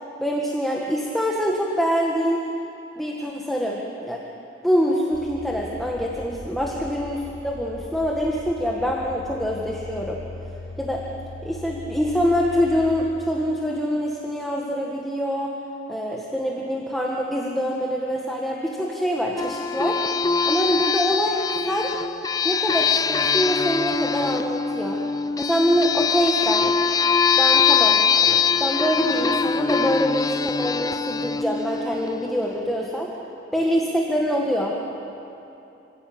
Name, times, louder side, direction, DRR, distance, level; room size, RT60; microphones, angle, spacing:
voice 1, 0.2-2.4 3.0-4.3 4.6-10.2 10.8-11.0 11.4-15.5 15.9-20.0 20.5-21.4 21.6-21.9 22.4-25.0 25.4-26.7 27.4-33.1 33.5-34.7, equal, ahead, -3 dB, 1.7 m, -25 dB
sound 1, 5.1-12.9, left 2 dB, 20° right, 5.1 m, -39 dB
sound 2, 19.4-32.6, left 6 dB, 20° left, 0.4 m, -23 dB
27.5 x 16.0 x 8.8 m, 2.8 s
head